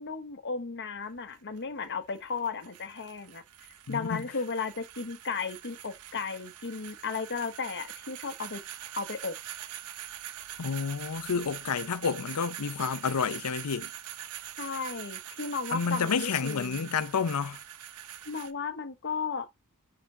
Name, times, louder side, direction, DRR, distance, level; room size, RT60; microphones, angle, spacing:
voice 1, 0.0-3.4 3.9-8.6 9.0-9.4 14.6-16.9 18.2-19.5, left 5 dB, 50° left, 1.0 m, -35 dB
sound 1, 1.0-18.5, right 11 dB, 85° right, 0.8 m, -44 dB
voice 2, 3.9-4.2 10.6-13.9 15.7-17.6, left 6 dB, 85° left, 0.6 m, -30 dB
10.0 x 3.8 x 2.8 m
head